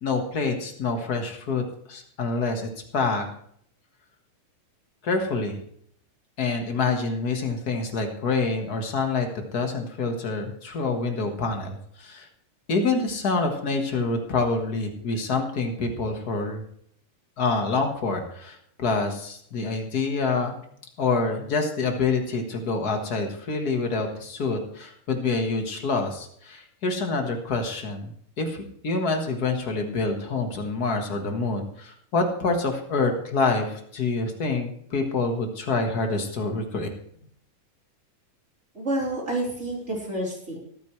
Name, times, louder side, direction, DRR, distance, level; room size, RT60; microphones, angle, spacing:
voice 1, 0.0-3.2 5.0-5.6 6.4-12.3 12.7-16.6 17.4-20.5 21.0-36.9, left 3 dB, 50° left, 4 dB, 1.1 m, -27 dB
voice 2, 38.7-40.6, right 1 dB, 20° right, -3 dB, 3.9 m, -29 dB
22.0 x 9.2 x 3.2 m, 0.66 s
omnidirectional pair, 3.8 m